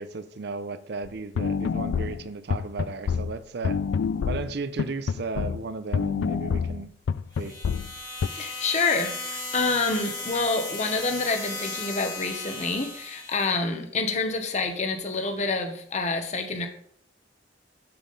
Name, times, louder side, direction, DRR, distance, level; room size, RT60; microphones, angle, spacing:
voice 1, 0.0-3.8 4.3-6.9 7.4-7.6, right 4 dB, 60° right, 0.5 m, -35 dB
sound 1, 1.0-1.1 1.3-5.6 5.9-8.3, left 6 dB, 80° left, 0.3 m, -27 dB
sound 2, 7.3-13.5, left 3 dB, 20° left, 1.6 m, -36 dB
voice 2, 8.3-16.7, left 3 dB, 40° left, 1.0 m, -27 dB
7.2 x 6.9 x 4.0 m
head